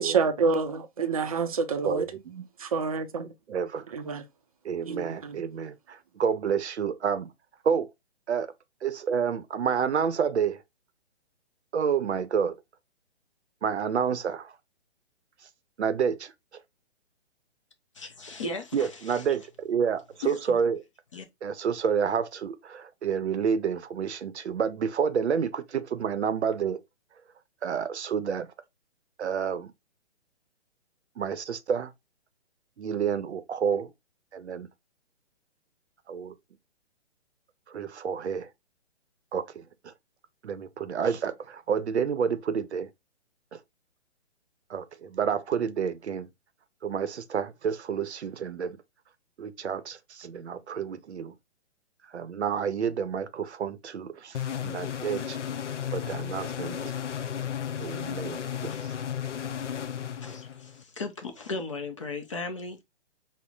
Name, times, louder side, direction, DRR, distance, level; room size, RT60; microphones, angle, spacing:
voice 1, 0.0-2.1 2.7-3.2 3.9-4.2 4.9-5.4, right 5 dB, 35° right, 0.4 m, -27 dB
voice 2, 1.8-2.4 3.5-3.8 4.6-7.3 7.6-7.9 8.3-8.5 8.8-10.6 11.7-12.6 13.6-14.5 15.8-16.3 18.7-20.8 21.4-26.8 27.6-28.5 29.2-29.7 31.2-31.9 32.8-33.9 34.3-34.7 36.1-36.3 37.7-38.5 39.3-39.9 40.4-42.9 43.5-43.6 44.7-46.3 46.8-48.8 49.4-51.3 52.1-55.4 55.9-56.9 57.8-58.7, right 7 dB, 70° right, 0.6 m, -29 dB
voice 3, 17.9-19.2 20.2-20.6 21.1-21.3 58.7-58.8 60.2-62.8, left 3 dB, 30° left, 0.4 m, -37 dB
sound 1, 54.3-60.8, left 9 dB, 90° left, 0.5 m, -34 dB
5.4 x 2.1 x 2.3 m
figure-of-eight pair, 135°, 35 cm